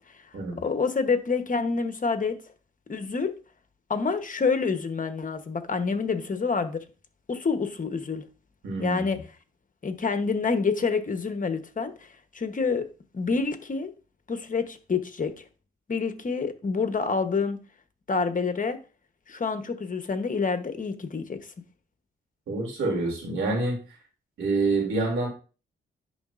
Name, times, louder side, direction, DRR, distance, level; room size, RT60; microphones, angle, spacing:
voice 1, 0.1-2.4 2.9-3.3 3.9-6.8 7.3-8.3 8.8-9.2 9.8-12.9 13.1-13.9 14.3-15.4 15.9-17.6 18.1-18.8 19.3-21.4, left 4 dB, 40° left, 1.0 m, -27 dB
voice 2, 8.6-9.0 22.5-23.8 24.4-25.3, right 3 dB, 90° right, 2.8 m, -26 dB
10.5 x 4.0 x 2.5 m
cardioid pair, 70°, 20 cm